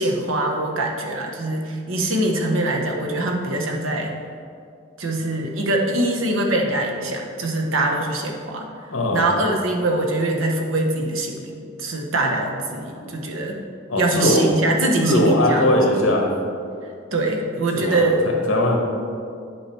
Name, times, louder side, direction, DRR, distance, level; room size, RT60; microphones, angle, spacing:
voice 1, 0.0-4.1 5.0-8.7 9.1-11.5 11.8-13.6 14.0-15.6 17.1-18.2, right 2 dB, 75° right, 1 dB, 1.0 m, -23 dB
voice 2, 8.9-9.3 12.9-13.2 13.9-14.4 15.0-16.3 17.7-18.8, left 1 dB, 70° left, 0 dB, 1.4 m, -20 dB
9.6 x 4.9 x 4.5 m, 2.4 s
head